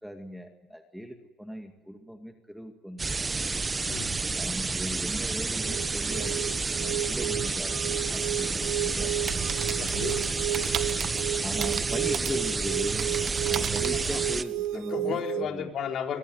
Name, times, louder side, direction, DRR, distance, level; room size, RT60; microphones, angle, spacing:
voice 1, 0.0-3.2 4.4-6.5 6.8-9.2 11.4-13.1 13.5-15.7, equal, ahead, 5 dB, 2.3 m, -38 dB
sound 1, 3.0-14.4, right 4 dB, 20° right, 1.0 m, -30 dB
voice 2, 3.9-4.2 7.3-7.5 9.7-10.2 13.9-14.2 14.7-16.2, left 7 dB, 50° left, 3 dB, 4.0 m, -34 dB
sound 2, 5.5-15.5, right 12 dB, 75° right, 1.3 m, -33 dB
sound 3, 9.2-14.8, right 9 dB, 50° right, 1.7 m, -36 dB
24.5 x 21.0 x 9.5 m, 1.1 s
supercardioid pair, 105°, 0 cm